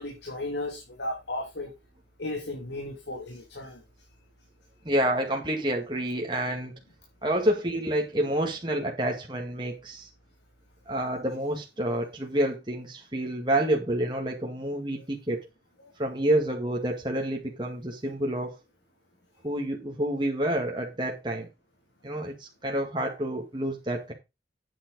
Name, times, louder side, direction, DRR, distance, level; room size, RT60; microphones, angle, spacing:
voice 1, 0.0-1.7 2.2-3.8, left 1 dB, 80° left, 2.8 m, -35 dB
voice 2, 4.8-6.7 7.2-10.1 10.9-15.5 16.0-18.6 19.4-21.5 22.0-24.1, right 1 dB, 25° right, 2.2 m, -28 dB
9.1 x 7.8 x 3.9 m
head